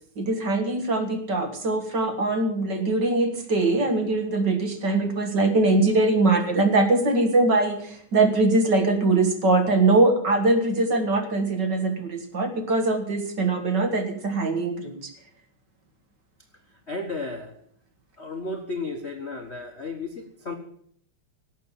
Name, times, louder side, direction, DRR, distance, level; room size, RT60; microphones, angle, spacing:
voice 1, 0.2-15.1, right 2 dB, 40° right, 7 dB, 2.0 m, -22 dB
voice 2, 16.9-17.5 18.2-20.5, left 3 dB, 70° left, 4 dB, 0.6 m, -33 dB
18.0 x 8.3 x 7.3 m, 0.63 s
omnidirectional pair, 3.3 m